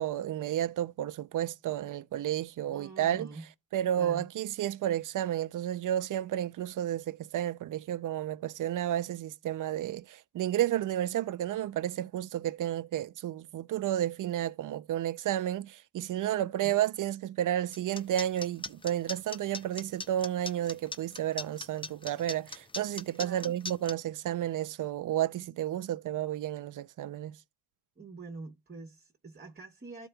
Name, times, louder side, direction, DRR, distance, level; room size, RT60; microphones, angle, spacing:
voice 1, 0.0-3.3 3.7-27.4, right 11 dB, 50° right, 0.5 m, -32 dB
voice 2, 2.7-3.4 4.0-4.3 23.2-23.6 28.0-30.1, right 3 dB, 25° right, 1.1 m, -45 dB
sound 1, 17.7-23.9, left 3 dB, 15° left, 0.5 m, -39 dB
13.0 x 4.4 x 2.2 m
cardioid pair, 100°, 40 cm